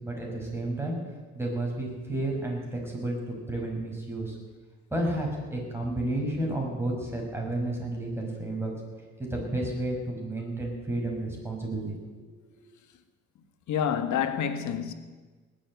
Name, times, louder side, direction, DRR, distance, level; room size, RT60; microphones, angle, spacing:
voice 1, 0.0-1.0 1.3-4.3 4.9-8.7 9.2-12.3, right 1 dB, 10° right, 6.2 m, -31 dB
voice 2, 13.7-14.9, left 8 dB, 75° left, 1.5 m, -28 dB
19.0 x 7.9 x 9.1 m
cardioid pair, 90°, 30 cm